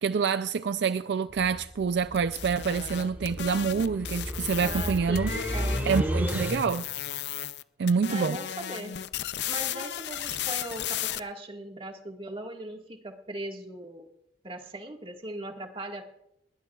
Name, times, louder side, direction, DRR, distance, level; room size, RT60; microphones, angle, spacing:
voice 1, 0.0-5.3 5.8-6.9 7.8-8.4, right 5 dB, 65° right, 0.4 m, -27 dB
sound 1, 1.3-7.0, equal, 10° right, 3.0 m, -33 dB
sound 2, 2.1-6.0 6.3-7.6 7.9-11.2, left 10 dB, 65° left, 0.5 m, -35 dB
voice 2, 4.6-6.3 8.1-9.0 9.5-14.1 14.4-16.0, right 1 dB, 30° right, 1.7 m, -39 dB
20.5 x 18.5 x 2.4 m
head